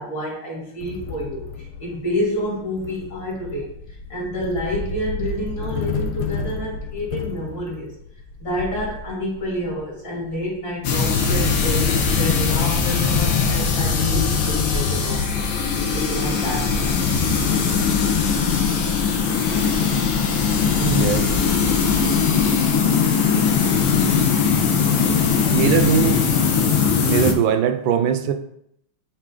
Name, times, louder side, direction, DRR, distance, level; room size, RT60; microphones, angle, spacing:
voice 1, 0.0-3.7 4.1-7.9 8.4-15.4 15.9-17.2 25.4-25.9, equal, 60° left, -4 dB, 2.7 m, -29 dB
sound 1, 0.8-11.0, left 4 dB, 90° left, 1.7 m, -32 dB
sound 2, 10.8-27.3, left 6 dB, 75° left, 1.7 m, -20 dB
voice 2, 20.8-21.3 25.5-26.2 27.0-28.3, right 8 dB, 70° right, 9 dB, 1.3 m, -20 dB
8.2 x 3.9 x 3.7 m, 0.75 s
omnidirectional pair, 2.4 m